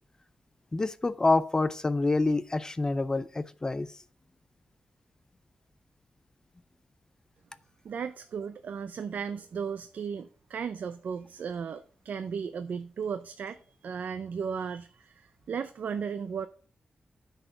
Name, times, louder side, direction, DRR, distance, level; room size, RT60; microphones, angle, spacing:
voice 1, 0.7-3.9, left 3 dB, 25° left, 0.4 m, -27 dB
voice 2, 7.8-16.5, right 6 dB, 75° right, 0.5 m, -35 dB
9.5 x 4.1 x 6.6 m
wide cardioid pair, 130°, 3 cm